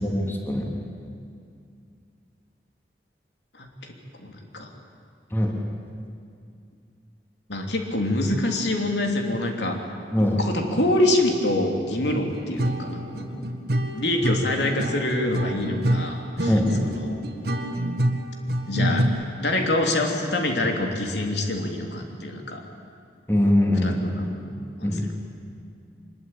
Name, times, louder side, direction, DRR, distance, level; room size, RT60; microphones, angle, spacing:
voice 1, 0.0-0.7 5.3-5.5 10.1-10.4 16.5-16.8 23.3-24.0 24.8-25.0, left 1 dB, 15° left, 0 dB, 3.0 m, -22 dB
voice 2, 4.2-4.7 7.5-9.8 10.4-13.4 13.9-17.2 18.7-19.1 19.4-22.6 23.8-25.1, left 1 dB, 75° left, 2 dB, 3.1 m, -26 dB
sound 1, 12.3-19.0, right 1 dB, 60° right, 2.1 m, -26 dB
24.5 x 21.5 x 9.0 m, 2.4 s
head